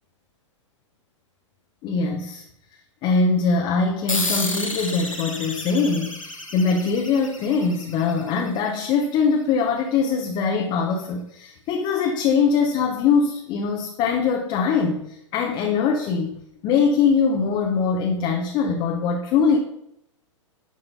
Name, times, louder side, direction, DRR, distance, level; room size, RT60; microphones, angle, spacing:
voice 1, 1.8-2.4 3.0-19.6, left 5 dB, 30° left, 1 dB, 1.0 m, -22 dB
sound 1, 4.1-9.0, left 2 dB, 90° left, 1.3 m, -31 dB
11.0 x 3.7 x 5.6 m, 0.77 s
figure-of-eight pair, 105°, 16 cm